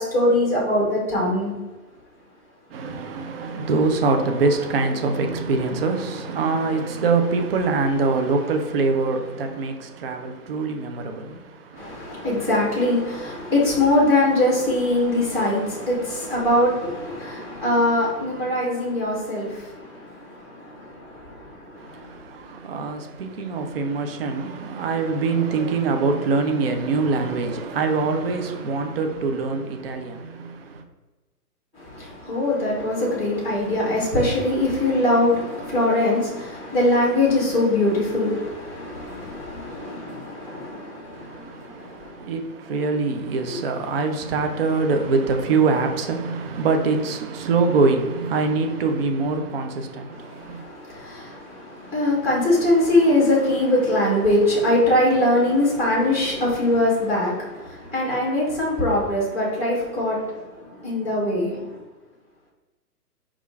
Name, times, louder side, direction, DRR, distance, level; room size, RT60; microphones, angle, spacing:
voice 1, 0.0-1.5 11.7-22.1 31.8-42.3 43.5-43.6 50.1-61.7, left 1 dB, 5° right, 0.7 m, -22 dB
voice 2, 2.7-12.0 21.8-30.8 41.1-50.6, right 4 dB, 40° right, 0.4 m, -24 dB
5.0 x 2.4 x 3.2 m
hypercardioid pair, 135°, 47 cm